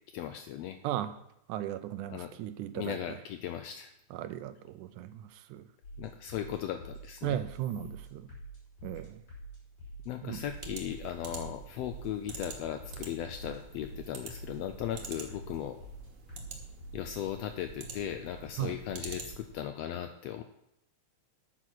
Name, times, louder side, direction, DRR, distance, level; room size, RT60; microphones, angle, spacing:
voice 1, 0.1-0.8 2.1-2.3 2.7-3.9 6.0-7.4 10.1-15.8 16.9-20.4, left 10 dB, 85° left, 8 dB, 1.4 m, -37 dB
voice 2, 0.8-1.2 1.5-3.0 4.1-5.7 7.2-8.3 8.8-9.2 10.2-10.4 18.6-18.8, right 12 dB, 85° right, 12 dB, 2.1 m, -36 dB
sound 1, 5.8-16.9, right 1 dB, 60° left, 6.6 m, -48 dB
sound 2, 10.5-19.6, right 5 dB, 60° right, 2.5 m, -46 dB
9.2 x 8.7 x 6.1 m, 0.80 s
omnidirectional pair, 3.5 m